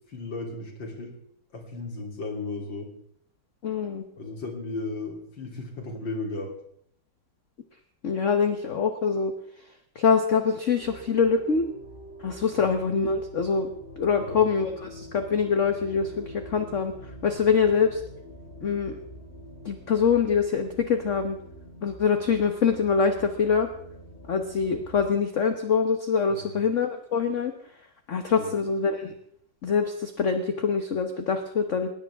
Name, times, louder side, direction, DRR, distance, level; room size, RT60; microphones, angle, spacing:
voice 1, 0.1-1.2 1.5-2.9 4.2-6.6 12.6-12.7 14.2-14.5 26.3-26.6 28.4-28.5, left 3 dB, 70° left, 1 dB, 4.0 m, -35 dB
voice 2, 3.6-4.0 8.0-9.3 9.9-11.7 12.2-13.7 14.0-16.9 17.2-18.0 18.6-19.0 19.6-21.4 21.8-23.7 24.3-27.5 28.1-29.1 29.6-31.9, left 6 dB, 45° left, 7 dB, 1.3 m, -24 dB
sound 1, 10.8-25.1, equal, 25° left, 4.5 m, -45 dB
20.0 x 19.5 x 3.6 m, 0.67 s
omnidirectional pair, 2.1 m